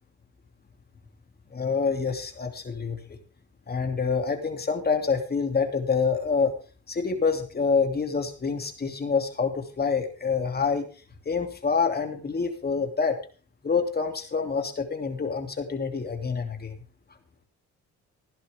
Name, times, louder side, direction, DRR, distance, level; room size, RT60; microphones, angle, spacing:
voice 1, 1.5-3.0 3.7-6.5 6.9-10.9 11.2-13.2 13.6-16.8, left 5 dB, 30° left, 5 dB, 2.8 m, -27 dB
16.0 x 11.0 x 3.6 m, 0.37 s
cardioid pair, 90°, 30 cm